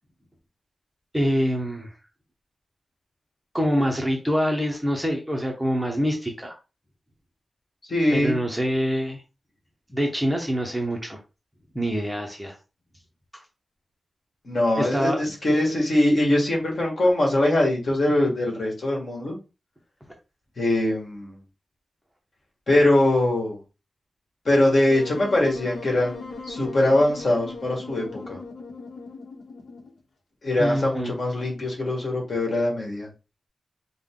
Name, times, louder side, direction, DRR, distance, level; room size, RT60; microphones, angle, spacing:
voice 1, 1.1-1.9 3.5-6.5 8.1-9.2 9.9-11.2 11.7-12.6 14.8-15.2 30.6-31.1, equal, 5° right, 1 dB, 0.7 m, -25 dB
voice 2, 7.9-8.4 14.5-19.4 20.6-21.4 22.7-23.6 24.5-28.4 30.4-33.1, left 1 dB, 45° left, -1 dB, 1.7 m, -22 dB
Wind instrument woodwind instrument, 24.9-30.0, left 4 dB, 65° left, 1.0 m, -38 dB
5.3 x 2.2 x 3.7 m, 0.29 s
wide cardioid pair, 165°, 0 cm